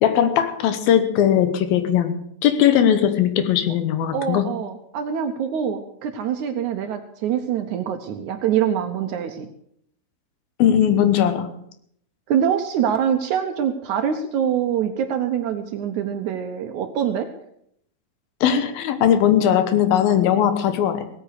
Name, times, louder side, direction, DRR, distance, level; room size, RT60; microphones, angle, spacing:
voice 1, 0.0-4.5 10.6-11.5 18.4-21.1, left 9 dB, 80° left, 10 dB, 2.9 m, -19 dB
voice 2, 4.1-9.5 12.3-17.3, right 8 dB, 70° right, 7 dB, 2.0 m, -24 dB
17.5 x 8.9 x 6.6 m, 0.69 s
omnidirectional pair, 4.2 m